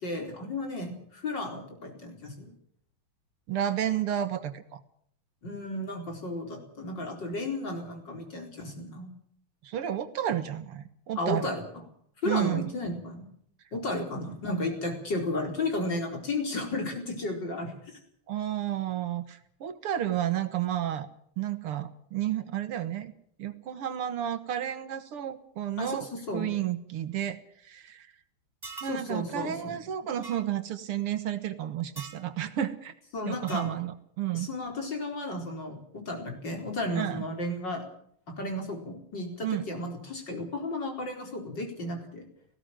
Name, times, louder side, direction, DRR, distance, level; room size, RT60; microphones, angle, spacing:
voice 1, 0.0-2.5 5.4-9.1 11.2-11.6 12.2-13.3 13.7-17.7 25.8-26.5 28.9-29.8 33.1-33.7 34.3-37.8 38.3-42.2, left 2 dB, 50° left, 3 dB, 5.2 m, -33 dB
voice 2, 3.5-4.8 9.6-11.5 12.2-12.7 18.3-21.1 21.4-23.1 23.4-27.4 27.6-28.1 28.8-32.9 33.2-34.5 36.9-37.3 39.4-39.6, right 11 dB, 80° right, 12 dB, 2.4 m, -31 dB
sound 1, 28.6-29.0 30.2-30.4 32.0-32.2 33.5-33.8, right 4 dB, 10° right, 3.0 m, -43 dB
19.0 x 16.5 x 9.1 m, 0.64 s
omnidirectional pair, 2.4 m